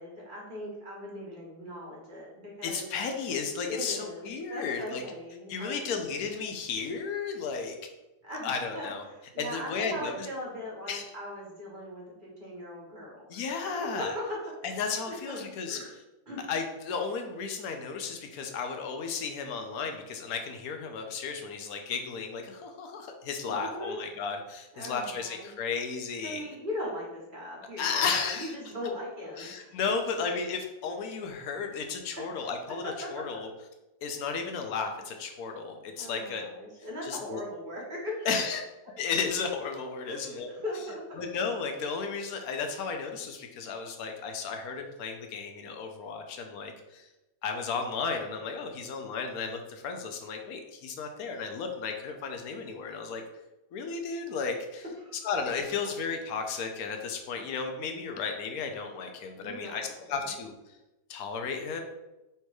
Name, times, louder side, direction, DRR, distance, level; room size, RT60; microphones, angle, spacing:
voice 1, 0.0-2.9 3.7-5.8 8.2-14.8 15.1-15.9 16.3-16.4 23.6-24.0 24.7-25.5 26.2-30.2 32.2-32.5 32.8-33.1 36.0-38.6 38.9-39.0 40.1-41.2 55.0-55.3 59.4-60.3, left 1 dB, 40° right, -4 dB, 1.2 m, -39 dB
voice 2, 2.6-5.0 5.5-7.8 8.4-9.0 9.4-10.3 10.9-11.0 13.3-14.2 14.6-15.8 16.5-26.4 27.8-28.5 29.4-33.5 34.0-36.4 37.0-37.4 38.3-38.6 39.0-40.5 41.2-47.1 47.4-53.2 53.7-54.8 55.2-60.5 61.1-61.8, left 5 dB, 90° left, 4 dB, 1.1 m, -34 dB
3.4 x 2.9 x 4.6 m, 0.99 s
omnidirectional pair, 1.5 m